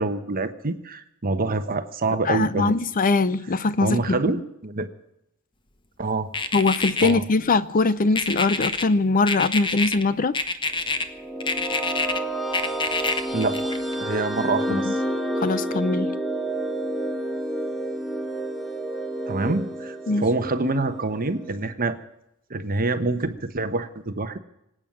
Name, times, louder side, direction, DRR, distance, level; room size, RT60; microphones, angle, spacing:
voice 1, 0.0-2.7 3.8-4.9 6.0-6.3 7.0-7.2 13.3-13.7 14.0-15.0 19.3-22.0 22.5-24.4, right 3 dB, 40° right, 1.1 m, -26 dB
voice 2, 2.2-4.2 6.5-10.4 14.7-14.9 15.4-16.1 20.1-20.3, left 3 dB, 40° left, 0.5 m, -22 dB
sound 1, 6.3-7.1 8.2-8.8 9.3-10.0 10.3-11.0 11.4-12.2 12.5-13.9, left 4 dB, 20° left, 1.0 m, -26 dB
sound 2, 10.9-21.7, right 1 dB, ahead, 1.1 m, -30 dB
25.0 x 9.0 x 6.3 m
head